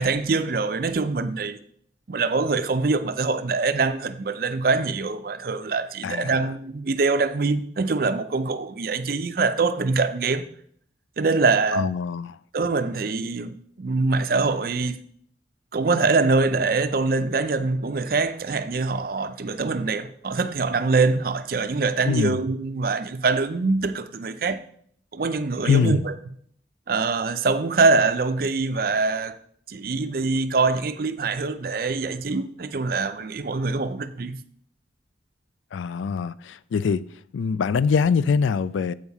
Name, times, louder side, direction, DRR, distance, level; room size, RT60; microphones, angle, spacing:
voice 1, 0.0-1.6 2.1-10.5 11.2-11.9 12.5-15.0 15.7-24.6 25.1-26.1 26.9-29.3 29.7-34.4, right 3 dB, 50° right, 0.5 m, -24 dB
voice 2, 6.0-6.5 11.7-12.4 22.1-22.4 25.6-26.0 35.7-37.0 37.3-38.9, left 6 dB, 85° left, 0.3 m, -23 dB
7.8 x 4.7 x 5.5 m
head